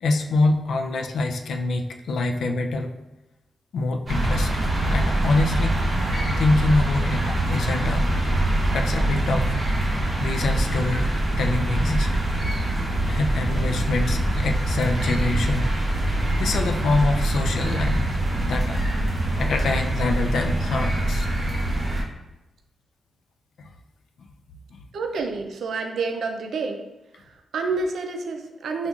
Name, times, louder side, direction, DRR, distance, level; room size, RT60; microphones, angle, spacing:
voice 1, 0.0-2.9 3.7-5.8 6.4-8.2 8.7-9.5 10.2-11.1 11.4-12.1 13.1-18.1 18.4-18.8 19.4-21.3 23.6-23.7 24.2-24.3 24.7-24.8, left 3 dB, 80° left, 4 dB, 0.3 m, -25 dB
sound 1, 4.1-22.0, right 1 dB, 30° right, 0.7 m, -24 dB
voice 2, 24.9-26.8 27.2-28.9, right 4 dB, 70° right, 4 dB, 0.4 m, -29 dB
5.2 x 2.4 x 2.3 m, 1.0 s
wide cardioid pair, 180°, 0 cm